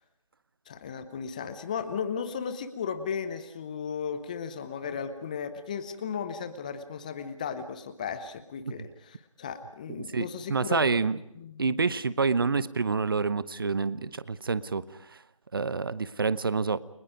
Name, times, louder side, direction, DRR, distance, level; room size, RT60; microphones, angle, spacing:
voice 1, 0.7-10.9 11.4-11.9, left 6 dB, 15° left, 10 dB, 0.8 m, -35 dB
voice 2, 10.1-11.2 11.6-15.2 15.5-16.8, right 4 dB, 40° right, 17 dB, 0.8 m, -28 dB
30.0 x 23.5 x 5.2 m, 0.77 s
figure-of-eight pair, 160°, 18 cm